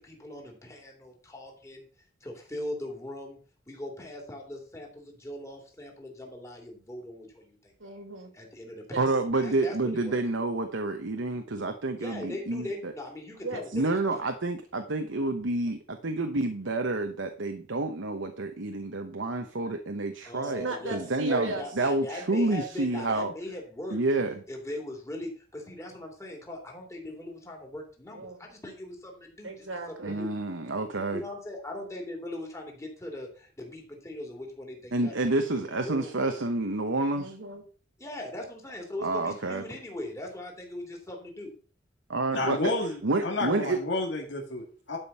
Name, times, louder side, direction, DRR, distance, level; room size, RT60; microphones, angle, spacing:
voice 1, 0.0-1.8 2.2-3.4 3.7-7.9 8.3-9.1 9.4-10.2 12.0-14.2 20.2-24.0 24.5-29.7 30.2-30.3 31.1-36.4 38.0-41.5, left 1 dB, 15° left, 1 dB, 2.8 m, -40 dB
voice 2, 7.8-8.3 8.9-9.1 13.4-13.6 20.4-21.7 28.1-28.4 29.4-30.1 37.1-37.6, right 3 dB, 90° right, 5 dB, 2.7 m, -36 dB
voice 3, 9.0-12.9 13.7-15.8 16.0-20.6 20.9-23.3 23.9-24.4 30.0-31.2 34.9-37.3 39.0-39.6 42.1-42.6 43.0-43.8, right 2 dB, 70° right, 6 dB, 1.0 m, -29 dB
voice 4, 42.3-45.0, left 2 dB, 65° left, 0 dB, 2.4 m, -30 dB
11.5 x 5.3 x 5.5 m, 0.40 s
head